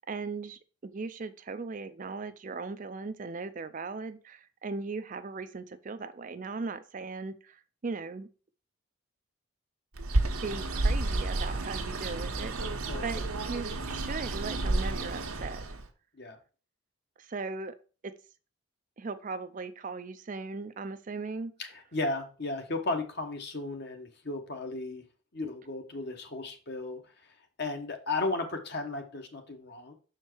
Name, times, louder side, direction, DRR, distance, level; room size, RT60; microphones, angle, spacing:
voice 1, 0.1-8.3 10.2-15.6 17.2-17.8 18.0-18.1 19.0-21.5, right 4 dB, 40° right, 11 dB, 0.4 m, -38 dB
Bird, 10.0-15.9, right 2 dB, 85° right, 1.1 m, -31 dB
voice 2, 21.6-25.0 25.3-27.0 27.6-29.9, left 2 dB, 50° left, 5 dB, 1.2 m, -35 dB
6.5 x 4.5 x 4.5 m, 0.36 s
head